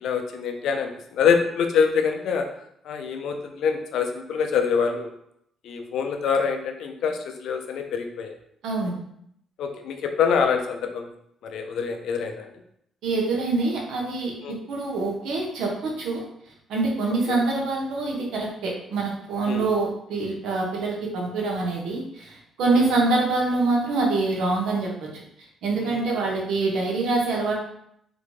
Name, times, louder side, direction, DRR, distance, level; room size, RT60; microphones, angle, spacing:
voice 1, 0.0-2.5 2.9-5.1 5.6-8.3 9.6-11.1 11.4-12.5 14.4-14.6 17.3-17.4 19.4-19.7 25.8-26.0, left 6 dB, 75° left, 5 dB, 0.4 m, -25 dB
voice 2, 8.6-8.9 13.0-14.3 14.7-16.2 16.7-25.1 25.6-27.5, right 3 dB, 85° right, -2 dB, 0.7 m, -25 dB
2.6 x 2.2 x 3.0 m, 0.73 s
cardioid pair, 90°, 0 cm